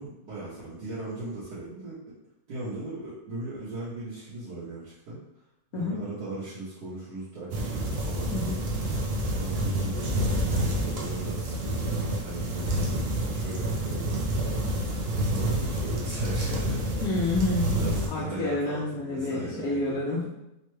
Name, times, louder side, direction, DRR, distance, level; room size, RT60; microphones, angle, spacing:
voice 1, 0.0-2.0 2.5-5.2 5.7-8.6 9.4-13.0 13.3-14.6 15.3-16.9 17.8-19.9, right 2 dB, 85° right, -11 dB, 1.5 m, -38 dB
sound 1, 7.5-18.1, right 1 dB, 60° right, 0.6 m, -28 dB
voice 2, 17.0-20.3, left 2 dB, 70° left, -4 dB, 1.1 m, -29 dB
3.7 x 2.2 x 3.1 m, 0.87 s
omnidirectional pair, 1.6 m